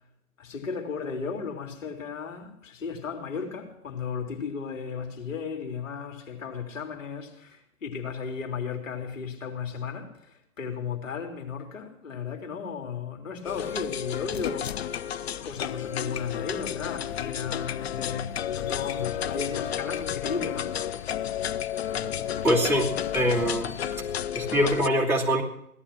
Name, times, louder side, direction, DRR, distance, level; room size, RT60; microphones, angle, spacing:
voice 1, 0.4-14.8 15.4-20.8, left 5 dB, 60° left, 3.5 m, -35 dB
sound 1, 13.5-24.9, left 10 dB, 45° left, 0.7 m, -32 dB
voice 2, 21.9-23.8 24.3-25.4, equal, 5° right, 2.8 m, -24 dB
17.5 x 13.0 x 6.0 m
figure-of-eight pair, 125°, 43 cm